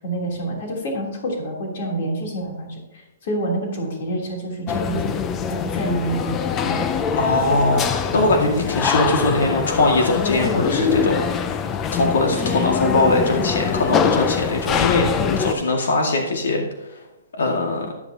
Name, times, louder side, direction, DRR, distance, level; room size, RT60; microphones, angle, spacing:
voice 1, 0.0-5.1 5.5-6.8, right 1 dB, 40° left, -1 dB, 3.4 m, -28 dB
sound 1, 4.7-15.5, left 7 dB, 15° left, 0.4 m, -23 dB
voice 2, 7.1-11.6 11.9-16.6 17.3-17.9, left 2 dB, 80° left, 1 dB, 2.1 m, -21 dB
13.5 x 12.0 x 2.9 m, 1.1 s
hypercardioid pair, 180°, 0 cm